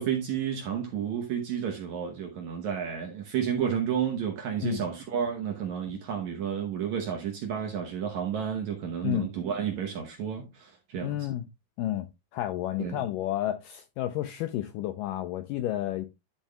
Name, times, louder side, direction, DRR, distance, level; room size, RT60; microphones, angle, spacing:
voice 1, 0.0-11.3 12.8-13.0, right 8 dB, 70° right, 1.8 m, -31 dB
voice 2, 11.0-11.4 11.8-12.1 12.3-16.1, left 13 dB, 85° left, 1.9 m, -31 dB
11.5 x 7.0 x 2.3 m
omnidirectional pair, 4.5 m